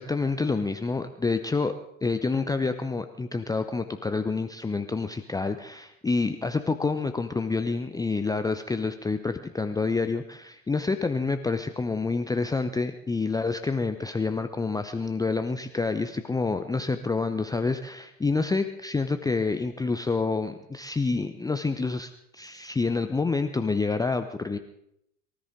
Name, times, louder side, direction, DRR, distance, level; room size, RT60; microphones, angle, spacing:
voice 1, 0.0-1.7 2.0-24.6, left 4 dB, 10° left, 8 dB, 0.7 m, -28 dB
24.0 x 13.5 x 3.8 m, 0.76 s
figure-of-eight pair, 75°, 42 cm